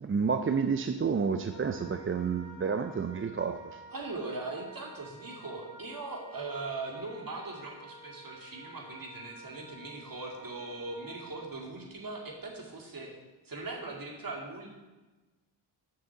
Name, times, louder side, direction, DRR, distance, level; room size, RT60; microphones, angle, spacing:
voice 1, 0.0-3.8, right 5 dB, 30° right, 7 dB, 0.5 m, -30 dB
Wind instrument woodwind instrument, 1.5-11.4, right 1 dB, 60° left, 2.6 m, -51 dB
voice 2, 3.9-13.1 13.4-14.7, right 3 dB, 45° right, 0 dB, 2.4 m, -40 dB
7.0 x 6.5 x 7.0 m, 1.2 s
cardioid pair, 75°, 47 cm